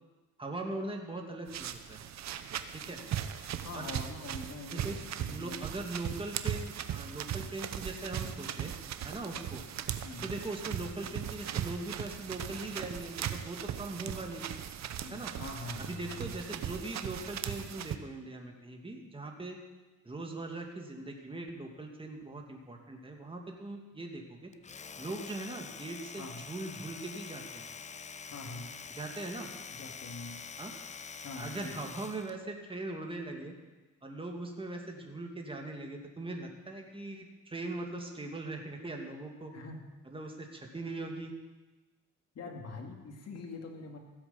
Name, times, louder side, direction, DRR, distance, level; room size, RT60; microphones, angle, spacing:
voice 1, 0.4-2.0 2.7-3.0 3.7-3.9 4.7-8.7 9.0-9.6 10.2-14.5 15.1-15.3 15.8-19.6 20.0-24.5 25.0-27.7 28.9-29.5 30.6-30.7 31.4-33.5 34.0-39.5 40.1-41.3, right 2 dB, 15° right, 2 dB, 2.4 m, -40 dB
sound 1, 1.5-18.0, right 10 dB, 65° right, 0.9 m, -38 dB
voice 2, 3.6-5.6 10.0-10.3 15.0-16.3 26.2-26.4 28.3-28.7 29.7-30.4 31.2-31.9 39.5-39.8 42.3-44.0, left 3 dB, 55° left, 2 dB, 2.4 m, -44 dB
Domestic sounds home sounds, 24.5-32.4, left 5 dB, 25° left, 0.5 m, -46 dB
16.0 x 8.0 x 7.1 m, 1.2 s
cardioid pair, 90°, 30 cm